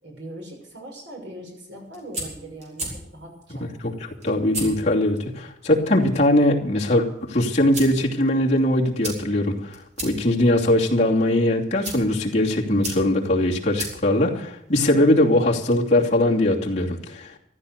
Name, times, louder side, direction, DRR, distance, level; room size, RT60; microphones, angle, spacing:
voice 1, 0.0-2.9 3.1-3.7, right 1 dB, 80° right, 1 dB, 6.2 m, -40 dB
sound 1, 1.7-15.1, right 1 dB, 40° right, 5.4 m, -39 dB
voice 2, 3.8-17.3, left 1 dB, 40° left, -2 dB, 2.8 m, -21 dB
14.0 x 13.0 x 6.7 m, 0.81 s
head